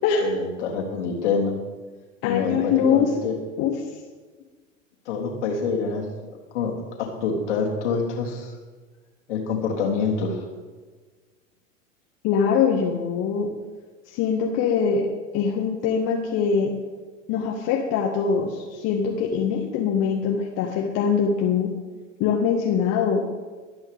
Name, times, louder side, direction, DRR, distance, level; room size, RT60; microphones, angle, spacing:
voice 1, 0.2-1.5 2.2-3.4 5.0-8.5 9.3-10.4, left 5 dB, 60° left, 0 dB, 3.3 m, -26 dB
voice 2, 2.2-3.1 3.6-3.7 12.2-13.5 14.1-15.1 15.3-16.7 17.3-21.7 22.2-23.2, left 6 dB, 40° left, 0 dB, 1.9 m, -23 dB
23.0 x 9.5 x 3.6 m, 1.4 s
figure-of-eight pair, 90°, 39 cm